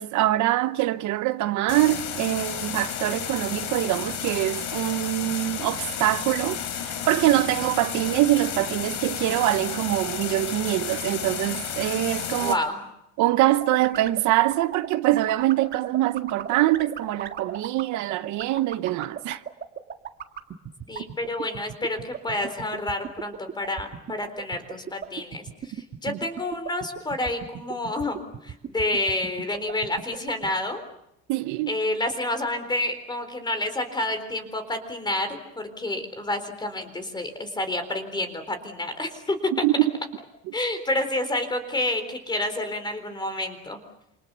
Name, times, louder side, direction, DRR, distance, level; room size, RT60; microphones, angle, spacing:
voice 1, 0.0-12.6 13.2-19.4 26.1-26.2 31.3-31.7 39.5-39.7, right 15 dB, 65° right, 0.9 m, -24 dB
sound 1, 1.7-12.5, left 8 dB, 60° left, 3.9 m, -32 dB
voice 2, 12.4-12.8 20.9-30.8 31.7-39.4 40.5-43.8, left 1 dB, 15° left, 4.0 m, -29 dB
sound 2, 13.4-30.5, right 8 dB, 30° right, 1.9 m, -34 dB
27.5 x 27.5 x 6.9 m
cardioid pair, 160°, 32 cm